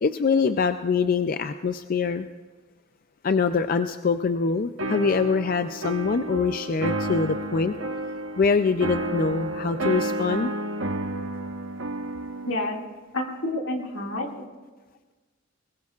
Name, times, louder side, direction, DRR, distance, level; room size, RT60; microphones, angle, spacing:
voice 1, 0.0-2.3 3.2-7.7 8.4-10.5, left 5 dB, 45° left, 10 dB, 0.4 m, -24 dB
sound 1, 4.8-12.6, right 2 dB, 75° right, 1.1 m, -31 dB
voice 2, 12.4-12.8 13.1-14.5, left 1 dB, 85° left, 0 dB, 2.3 m, -29 dB
21.0 x 20.5 x 2.4 m, 1.3 s
head